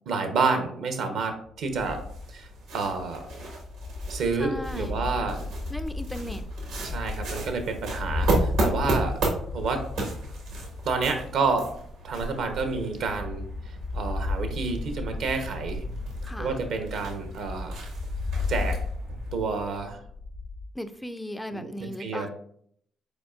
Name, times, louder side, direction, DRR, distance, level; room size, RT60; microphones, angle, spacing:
voice 1, 0.1-2.0 2.3-2.5 2.7-3.3 4.1-5.5 6.8-9.2 9.5-9.9 10.8-11.7 12.0-13.4 13.9-15.9 16.4-17.8 18.5-18.8 19.3-20.0 21.5-22.3, right 4 dB, 70° right, 7 dB, 0.8 m, -29 dB
sound 1, 1.7-20.6, left 2 dB, 60° left, 0.6 m, -34 dB
sound 2, 1.7-19.4, right 2 dB, 85° right, 1.3 m, -35 dB
voice 2, 4.4-5.0 5.7-6.4 16.2-16.6 20.8-22.3, left 1 dB, 10° left, 9 dB, 0.4 m, -36 dB
5.1 x 4.1 x 2.4 m, 0.67 s
supercardioid pair, 55°, 0 cm